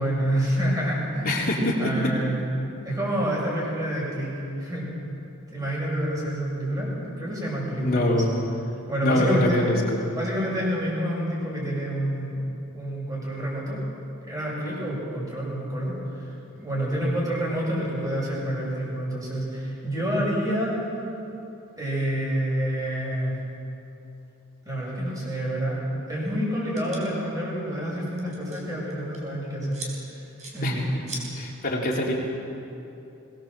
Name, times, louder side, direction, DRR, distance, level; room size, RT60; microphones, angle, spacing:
voice 1, 0.0-1.4 1.8-2.4 2.8-4.3 4.6-4.9 5.5-8.2 8.9-9.6 10.1-12.4 12.7-13.8 14.2-20.8 21.8-23.3 24.6-30.2 30.5-31.3, equal, 15° right, -4 dB, 7.2 m, -28 dB
voice 2, 1.2-1.8 7.8-8.5 9.0-10.0 30.6-30.9 31.3-32.1, left 1 dB, 40° left, -2 dB, 3.6 m, -24 dB
sound 1, 26.8-27.0 28.0-28.6 28.9-29.2 29.7-29.9 30.4-30.6 31.1-31.2, right 2 dB, 35° right, 4.4 m, -37 dB
22.5 x 19.5 x 7.5 m, 2.9 s
head